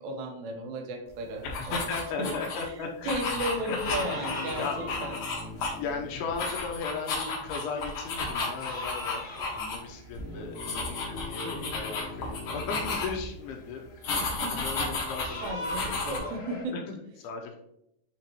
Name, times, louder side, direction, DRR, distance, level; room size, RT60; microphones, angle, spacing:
voice 1, 0.0-1.9 2.2-5.4 11.4-11.8 12.6-12.8 14.1-14.7 15.4-16.8, right 1 dB, 80° right, 3 dB, 3.1 m, -35 dB
voice 2, 1.4-3.2 3.7-3.8 4.2-4.8 5.7-9.3 9.5-16.0 16.7-17.6, left 5 dB, 80° left, 2 dB, 2.5 m, -37 dB
sound 1, 1.4-2.6 3.0-6.0 6.3-9.8 10.0-10.2 10.5-13.3 14.0-16.2, left 3 dB, 65° left, 1.5 m, -33 dB
sound 2, 3.0-5.6 6.5-6.6 7.4-7.7 7.9-11.0 11.5-12.4 12.7-16.6, left 1 dB, 30° left, 1.4 m, -43 dB
sound 3, 3.8-7.2 10.2-13.0, left 3 dB, 55° right, 1.7 m, -43 dB
8.9 x 3.7 x 2.9 m, 0.78 s
omnidirectional pair, 4.9 m